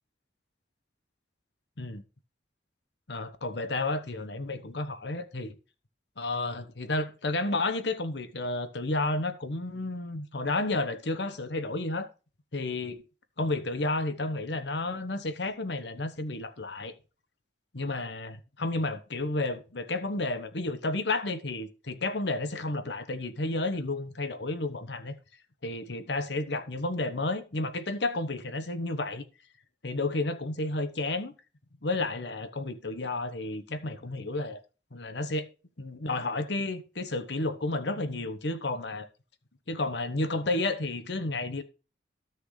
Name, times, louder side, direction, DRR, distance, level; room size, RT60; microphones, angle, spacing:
voice 1, 3.1-5.5 6.2-12.1 12.5-13.0 13.4-16.9 17.7-25.2 25.6-29.2 29.8-31.3 31.8-34.6 34.9-35.5 35.8-39.1 39.7-41.6, left 2 dB, 70° left, 1.1 m, -31 dB
13.5 x 6.1 x 3.2 m
head